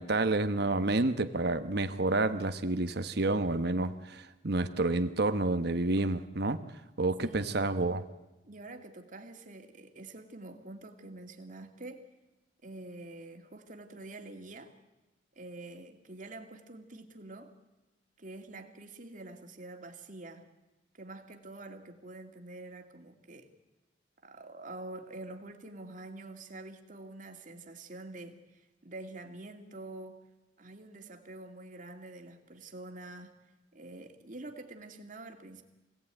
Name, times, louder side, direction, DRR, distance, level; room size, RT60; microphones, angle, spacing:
voice 1, 0.0-6.6 7.0-8.0, right 2 dB, 60° right, 9 dB, 1.1 m, -29 dB
voice 2, 7.2-7.7 8.4-12.1 12.6-14.7 15.4-17.5 18.2-20.5 20.9-23.5 24.2-30.2 30.6-33.4 33.7-35.6, right 2 dB, 45° right, 5 dB, 2.4 m, -46 dB
25.5 x 17.5 x 9.1 m, 1.0 s
head